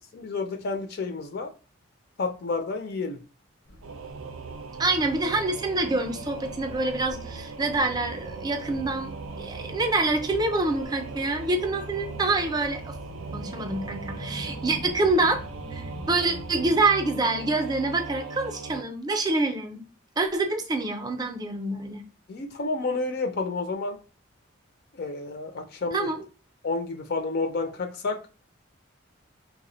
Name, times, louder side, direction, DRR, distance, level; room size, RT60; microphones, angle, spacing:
voice 1, 0.1-1.5 2.2-3.2 22.3-24.0 24.9-26.1 26.6-28.2, left 3 dB, 50° left, 6 dB, 0.4 m, -30 dB
sound 1, 3.6-16.8, equal, 90° left, 0.7 m, -44 dB
Singing / Musical instrument, 3.8-18.8, right 4 dB, 80° right, 0.4 m, -39 dB
voice 2, 4.8-12.9 13.3-15.4 15.7-19.8 20.2-22.0 25.9-26.2, right 2 dB, 20° right, 5 dB, 0.4 m, -26 dB
3.4 x 2.0 x 3.7 m, 0.35 s
head